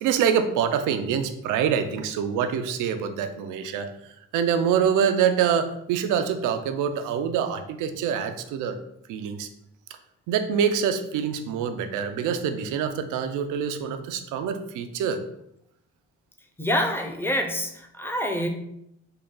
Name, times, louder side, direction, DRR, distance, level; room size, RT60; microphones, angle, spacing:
voice 1, 0.0-3.9 4.3-8.8 9.1-9.5 10.3-15.2, right 7 dB, 90° right, 8 dB, 0.5 m, -25 dB
voice 2, 16.6-18.5, equal, 10° left, 3 dB, 0.6 m, -26 dB
3.8 x 2.2 x 3.7 m, 0.77 s
cardioid pair, 90°, 30 cm